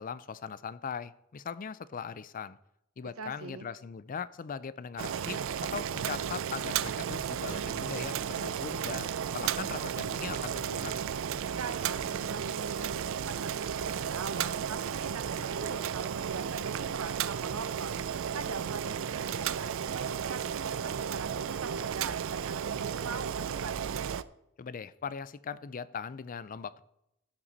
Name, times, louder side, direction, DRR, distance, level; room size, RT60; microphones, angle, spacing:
voice 1, 0.0-2.6 3.0-5.4 5.7-11.0 24.6-26.8, left 6 dB, 40° left, 16 dB, 0.4 m, -40 dB
voice 2, 3.0-3.7 11.6-23.7, right 4 dB, 85° right, 10 dB, 0.9 m, -42 dB
Boiling, 5.0-24.2, right 8 dB, 70° right, 0.4 m, -34 dB
16.0 x 5.8 x 4.1 m, 0.81 s
head